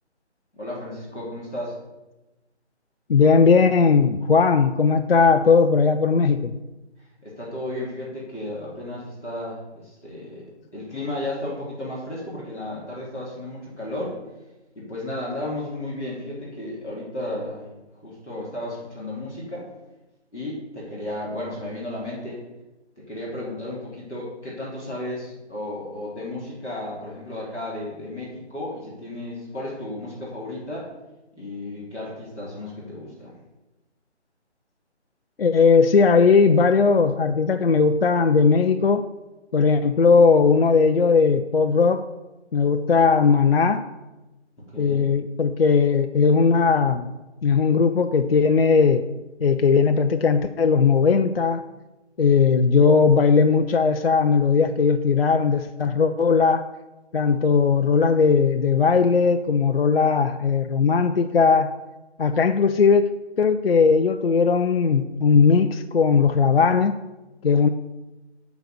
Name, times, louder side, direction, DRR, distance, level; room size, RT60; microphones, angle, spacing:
voice 1, 0.6-1.7 7.2-10.4 10.7-14.2 14.7-17.6 18.0-19.6 20.3-22.4 22.9-30.9 31.4-33.3 44.7-45.1, left 1 dB, 5° right, -19 dB, 0.7 m, -33 dB
voice 2, 3.1-6.5 35.4-39.1 39.5-42.1 42.5-43.8 44.8-47.1 47.4-49.1 49.4-51.6 52.2-56.6 57.1-61.7 62.2-63.1 63.4-66.9 67.4-67.7, left 5 dB, 55° left, 7 dB, 0.5 m, -18 dB
9.2 x 4.0 x 6.7 m, 1.0 s
figure-of-eight pair, 170°, 35 cm